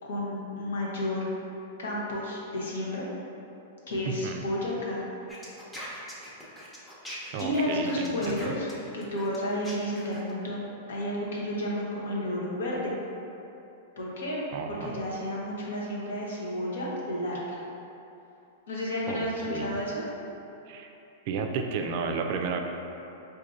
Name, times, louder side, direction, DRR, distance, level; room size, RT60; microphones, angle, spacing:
voice 1, 0.0-1.3 1.8-3.0 3.9-5.0 7.4-8.7 8.9-12.9 14.0-14.4 14.7-17.6 18.7-20.0, left 1 dB, 80° left, -4 dB, 0.8 m, -31 dB
sound 1, 5.3-10.3, equal, 5° left, 0.7 m, -42 dB
voice 2, 7.3-8.5 14.5-14.9 19.1-19.8 20.7-20.9 21.3-22.6, right 5 dB, 55° right, 4 dB, 0.3 m, -32 dB
4.7 x 2.6 x 2.5 m, 2.8 s
hypercardioid pair, 120°, 0 cm